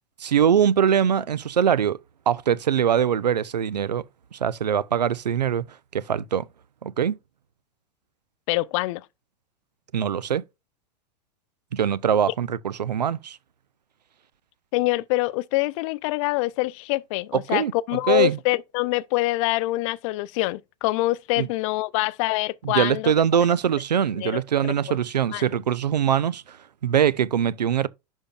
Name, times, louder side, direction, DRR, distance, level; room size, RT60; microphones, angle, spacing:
voice 1, 0.2-2.0 2.3-4.0 4.3-5.7 5.9-6.5 6.8-7.2 9.9-10.4 11.7-13.4 17.3-18.4 21.4-21.5 22.6-26.6 26.8-27.9, right 8 dB, 85° right, 0.5 m, -22 dB
voice 2, 8.5-9.0 14.7-23.1 24.2-25.0 25.3-25.4, left 20 dB, 50° left, 0.5 m, -25 dB
11.0 x 4.4 x 2.3 m
hypercardioid pair, 95°, 21 cm